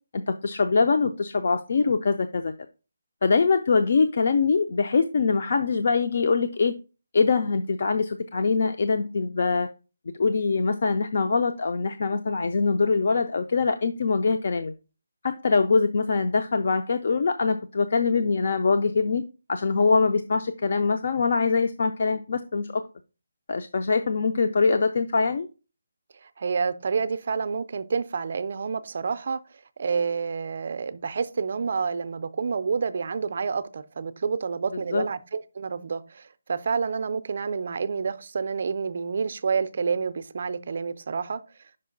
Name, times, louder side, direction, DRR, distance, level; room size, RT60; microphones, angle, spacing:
voice 1, 0.1-2.5 3.2-6.7 7.1-9.7 10.1-14.7 15.2-19.2 19.5-22.8 23.5-25.5 34.7-35.0, left 4 dB, 45° left, 0.4 m, -23 dB
voice 2, 26.2-29.4 29.8-41.4, right 5 dB, 40° right, 0.4 m, -28 dB
5.5 x 5.0 x 3.8 m
hypercardioid pair, 175°, 0 cm